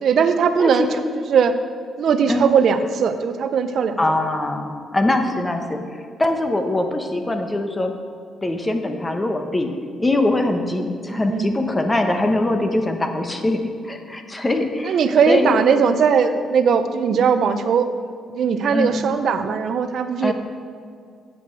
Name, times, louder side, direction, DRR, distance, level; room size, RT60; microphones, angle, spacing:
voice 1, 0.0-1.5 2.0-4.2 11.1-11.5 14.8-17.9 18.3-20.3, right 6 dB, 65° right, 9 dB, 0.6 m, -19 dB
voice 2, 4.0-7.9 8.4-9.7 10.0-13.6 13.8-15.0 15.3-15.5 17.0-17.2 18.7-19.1 20.2-20.3, left 1 dB, 20° left, 5 dB, 1.0 m, -22 dB
9.1 x 7.8 x 4.6 m, 2.2 s
cardioid pair, 90°, 0 cm